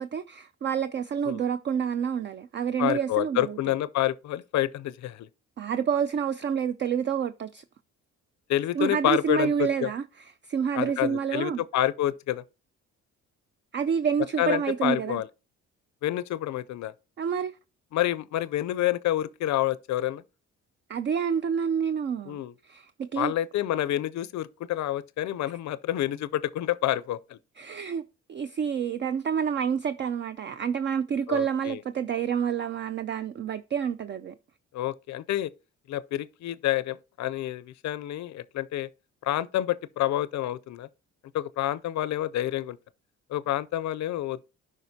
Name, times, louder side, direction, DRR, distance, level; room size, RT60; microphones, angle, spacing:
voice 1, 0.0-3.6 5.6-7.6 8.7-11.6 13.7-15.2 17.2-17.6 20.9-22.4 22.6-23.3 27.6-28.0 28.3-34.3, right 7 dB, 40° right, 0.4 m, -28 dB
voice 2, 2.8-5.3 8.5-9.9 10.8-12.4 14.4-15.3 16.0-16.9 17.9-20.2 22.3-22.5 23.2-27.4 31.3-31.8 34.7-35.5 35.9-38.9 39.2-40.9 41.3-42.8 43.3-44.4, left 13 dB, 65° left, 0.5 m, -28 dB
12.0 x 5.0 x 2.7 m
cardioid pair, 90°, 30 cm